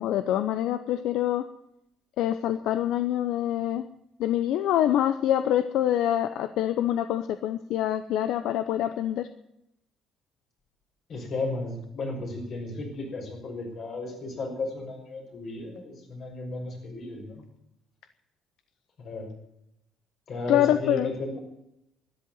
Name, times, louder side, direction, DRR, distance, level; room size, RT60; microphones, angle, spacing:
voice 1, 0.0-1.4 2.2-3.8 4.2-9.3 20.5-21.1, left 11 dB, 80° left, 11 dB, 0.7 m, -25 dB
voice 2, 11.1-17.4 19.0-19.3 20.3-21.4, left 2 dB, 50° left, 1 dB, 6.0 m, -34 dB
13.0 x 10.5 x 9.6 m, 0.83 s
cardioid pair, 125°, 0 cm